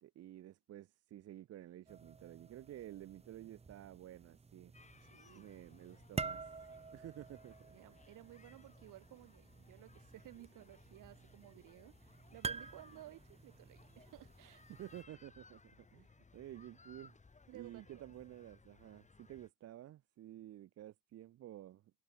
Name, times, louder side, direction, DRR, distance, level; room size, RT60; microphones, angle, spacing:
voice 1, 0.0-4.7 5.4-6.5 6.9-7.6 14.7-17.2 17.5-21.9, right 13 dB, 50° right, 0.7 m, -52 dB
sound 1, 1.9-15.0, right 4 dB, 20° right, 1.4 m, -49 dB
sound 2, 4.7-19.5, left 4 dB, 20° left, 7.8 m, -63 dB
voice 2, 5.0-5.5 7.7-14.6 17.5-18.0, right 15 dB, 75° right, 2.4 m, -57 dB
cardioid pair, 120°, 32 cm